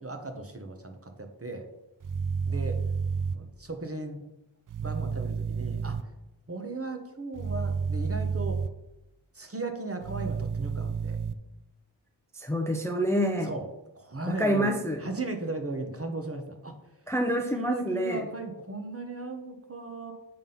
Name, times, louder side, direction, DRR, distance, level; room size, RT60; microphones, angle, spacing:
voice 1, 0.0-1.7 2.5-2.8 3.3-4.2 4.8-6.1 6.5-8.6 9.3-11.2 13.4-13.7 13.9-14.7 15.0-16.8 17.5-20.1, right 2 dB, 30° right, 5 dB, 1.2 m, -36 dB
sound 1, 2.0-3.3 4.7-6.0 7.4-8.7 10.0-11.3, right 6 dB, 45° right, 0.5 m, -30 dB
voice 2, 12.3-13.5 14.3-15.0 17.1-18.3, equal, 5° left, 4 dB, 0.6 m, -27 dB
7.7 x 3.6 x 5.6 m, 0.94 s
cardioid pair, 50°, 47 cm